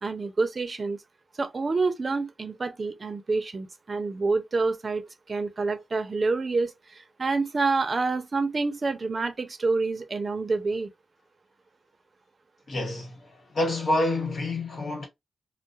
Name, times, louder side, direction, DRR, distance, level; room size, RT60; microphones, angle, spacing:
voice 1, 0.0-1.0 1.4-6.7 7.2-10.9, right 3 dB, 45° right, 0.6 m, -27 dB
voice 2, 12.7-15.1, left 1 dB, 65° left, 1.3 m, -28 dB
2.3 x 2.1 x 2.6 m
cardioid pair, 80°, 0 cm